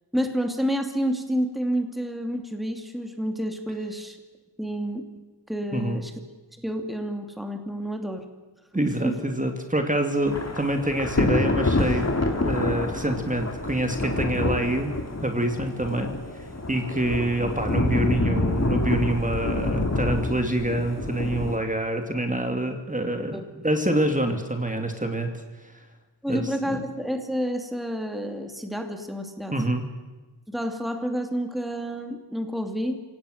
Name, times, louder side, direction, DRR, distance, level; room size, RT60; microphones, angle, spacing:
voice 1, 0.1-4.2 4.6-5.0 5.5-6.1 6.6-8.2 9.0-9.2 23.3-23.4 26.2-29.5 30.5-33.0, equal, ahead, 5 dB, 2.6 m, -29 dB
voice 2, 8.7-12.1 12.4-14.9 15.2-25.3 25.6-25.7 26.3-26.8 29.5-29.8, right 1 dB, 20° right, 4 dB, 2.5 m, -26 dB
Thunder / Rain, 10.3-21.6, left 2 dB, 35° left, 2.8 m, -27 dB
26.5 x 17.5 x 6.6 m, 1.3 s
wide cardioid pair, 80°, 42 cm